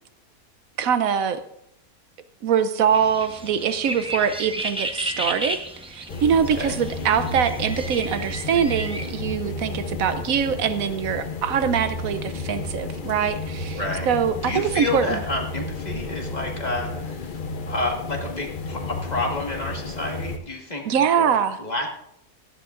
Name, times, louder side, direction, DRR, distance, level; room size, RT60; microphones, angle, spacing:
voice 1, 0.8-1.4 2.4-5.6 5.8-13.8 14.1-15.2 20.8-21.6, right 7 dB, 75° right, 11 dB, 1.1 m, -23 dB
sound 1, 2.9-9.1, right 1 dB, 5° right, 0.7 m, -33 dB
sound 2, 6.1-20.4, left 2 dB, 45° left, 0.7 m, -32 dB
voice 2, 13.7-14.1 14.4-17.4 17.7-21.9, left 2 dB, 30° left, 0 dB, 1.7 m, -30 dB
17.5 x 13.0 x 2.5 m, 0.77 s
omnidirectional pair, 1.5 m